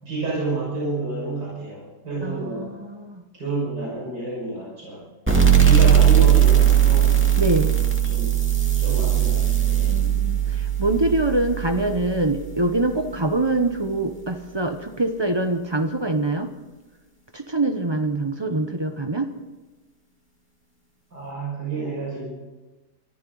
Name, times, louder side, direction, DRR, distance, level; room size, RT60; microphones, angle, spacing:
voice 1, 0.0-2.7 3.4-5.0 5.6-7.1 8.1-8.3 8.8-9.9 21.1-22.3, right 3 dB, 80° right, -5 dB, 6.5 m, -29 dB
voice 2, 2.2-3.2 7.4-7.7 9.9-16.5 17.3-19.3, right 2 dB, 25° right, 7 dB, 0.7 m, -24 dB
sound 1, 5.3-12.5, right 9 dB, 5° right, 2.1 m, -18 dB
23.5 x 14.5 x 4.0 m, 1.2 s
omnidirectional pair, 1.8 m